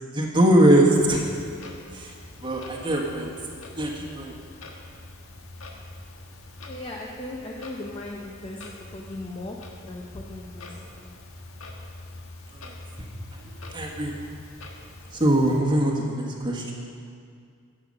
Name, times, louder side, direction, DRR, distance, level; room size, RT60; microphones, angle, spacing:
voice 1, 0.1-1.3 1.9-2.1 2.4-3.3 3.8-4.3 12.6-12.7 13.7-14.1 15.1-16.8, right 1 dB, 20° right, -1 dB, 1.5 m, -21 dB
Clock, 0.9-15.6, left 2 dB, 75° left, 1.5 m, -44 dB
voice 2, 6.7-9.6 9.9-11.2, left 2 dB, 25° left, -1 dB, 0.8 m, -38 dB
15.0 x 8.8 x 5.4 m, 2.3 s
head